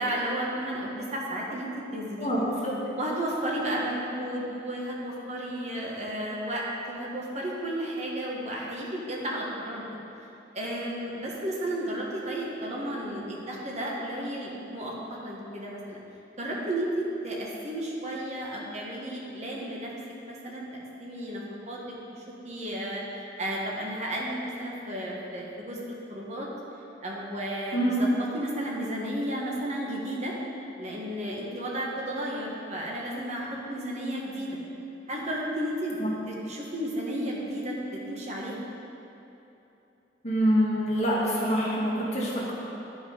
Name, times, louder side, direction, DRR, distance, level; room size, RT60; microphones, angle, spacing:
voice 1, 0.0-2.4 3.0-9.8 10.5-16.0 16.4-19.9 20.2-26.5 27.0-30.3 30.8-34.6 35.1-36.0 36.3-38.6, right 1 dB, 40° right, -3 dB, 1.4 m, -33 dB
voice 2, 27.7-28.1 36.0-36.1 40.2-42.5, equal, 40° left, -6 dB, 1.9 m, -25 dB
9.8 x 5.5 x 5.1 m, 2.9 s
head